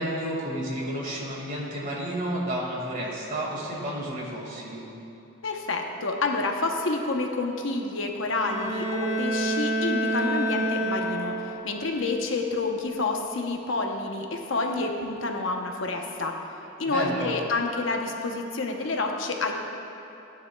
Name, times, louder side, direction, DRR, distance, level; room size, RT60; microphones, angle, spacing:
voice 1, 0.0-4.8 16.9-17.3, right 1 dB, 40° right, -3 dB, 2.0 m, -31 dB
voice 2, 5.4-16.3 16.8-19.5, left 3 dB, 70° left, 2 dB, 0.9 m, -29 dB
Bowed string instrument, 8.3-11.7, right 1 dB, 60° right, 1.6 m, -28 dB
15.5 x 9.6 x 2.3 m, 3.0 s
head